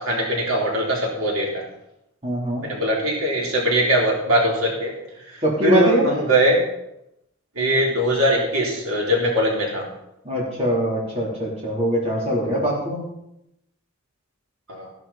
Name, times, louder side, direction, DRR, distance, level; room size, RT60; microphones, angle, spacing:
voice 1, 0.0-1.6 2.6-4.9 5.3-6.6 7.6-9.9 14.7-14.9, right 1 dB, 90° right, -2 dB, 3.8 m, -21 dB
voice 2, 2.2-2.6 5.4-6.1 10.2-13.1, equal, 30° right, -4 dB, 3.8 m, -22 dB
16.0 x 11.5 x 4.3 m, 0.81 s
head